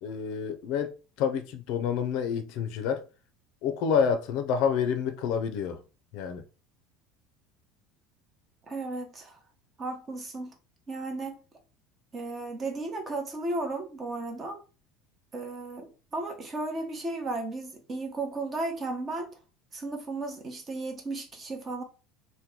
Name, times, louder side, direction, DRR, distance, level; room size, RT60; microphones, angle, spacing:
voice 1, 0.0-3.1 3.6-5.8 6.1-6.4, left 7 dB, 65° left, 0.5 m, -28 dB
voice 2, 8.7-9.4 9.8-10.5 10.9-11.4 12.1-14.6 15.3-19.3 19.7-21.8, right 2 dB, 30° right, 0.8 m, -34 dB
2.9 x 2.2 x 3.6 m
supercardioid pair, 125°, 0 cm